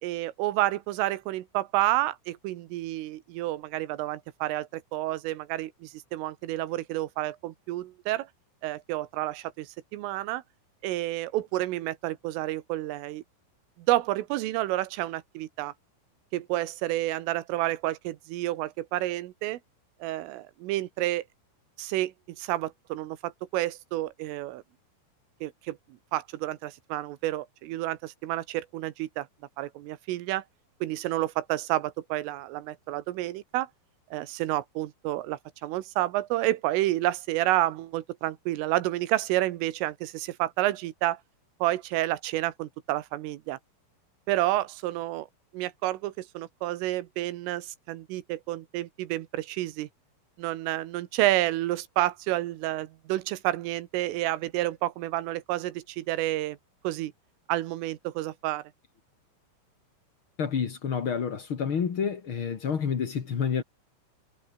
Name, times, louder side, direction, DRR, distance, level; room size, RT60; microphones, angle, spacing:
voice 1, 0.0-8.3 8.6-10.4 10.8-13.2 13.8-15.7 16.3-19.6 20.0-21.2 21.8-24.6 25.4-25.8 26.1-29.3 29.6-30.4 30.8-33.7 34.1-41.2 41.6-43.6 44.3-45.3 45.5-49.9 50.4-56.6 56.8-57.1 57.5-58.7, right 16 dB, 80° right, 3.8 m, -30 dB
voice 2, 60.4-63.6, left 6 dB, 75° left, 1.2 m, -29 dB
omnidirectional pair, 5.9 m